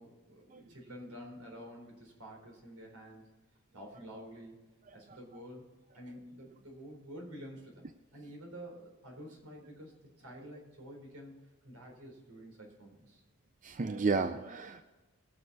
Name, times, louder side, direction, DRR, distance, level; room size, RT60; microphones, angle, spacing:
voice 1, 0.0-3.2 3.7-4.6 4.9-5.6 5.9-7.8 8.1-11.3 11.6-13.2, equal, 85° right, 1 dB, 4.1 m, -49 dB
voice 2, 13.6-14.8, right 4 dB, 35° right, 9 dB, 0.5 m, -32 dB
20.5 x 7.1 x 4.1 m, 1.2 s
head